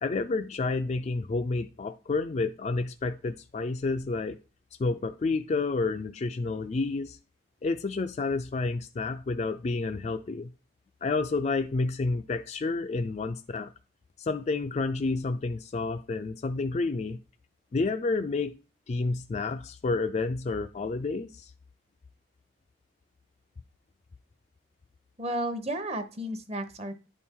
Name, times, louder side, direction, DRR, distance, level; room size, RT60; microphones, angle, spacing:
voice 1, 0.0-4.4 4.8-7.2 7.6-10.5 11.0-13.7 14.2-17.2 17.7-18.5 18.9-21.5, left 3 dB, 35° left, 0.3 m, -30 dB
voice 2, 25.2-26.9, right 1 dB, 35° right, 0.8 m, -33 dB
10.0 x 4.3 x 3.6 m
head